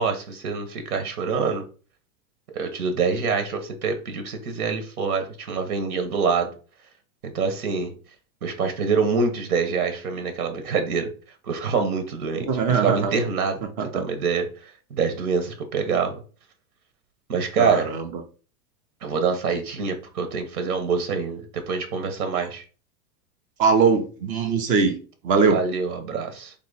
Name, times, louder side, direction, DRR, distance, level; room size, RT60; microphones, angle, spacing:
voice 1, 0.0-1.6 2.5-6.5 7.2-7.9 8.4-11.1 11.4-13.6 13.9-16.2 17.3-17.9 19.0-22.6 25.5-26.5, right 5 dB, 85° right, 1.1 m, -25 dB
voice 2, 12.3-13.1 13.8-14.0 17.6-18.1 22.3-22.4 23.6-25.6, right 5 dB, 20° right, 0.3 m, -21 dB
3.5 x 2.9 x 4.0 m
supercardioid pair, 135°, 43 cm